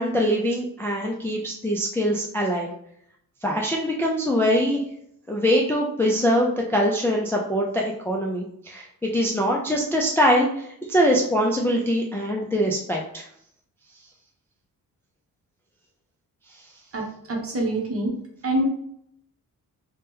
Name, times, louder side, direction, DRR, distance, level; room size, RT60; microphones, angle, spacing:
voice 1, 0.0-2.7 3.4-4.8 5.3-13.2, equal, 5° left, -2 dB, 0.3 m, -23 dB
voice 2, 16.9-18.1 18.4-18.6, right 1 dB, 40° right, 1 dB, 0.8 m, -26 dB
2.8 x 2.2 x 3.4 m, 0.69 s
wide cardioid pair, 125°, 36 cm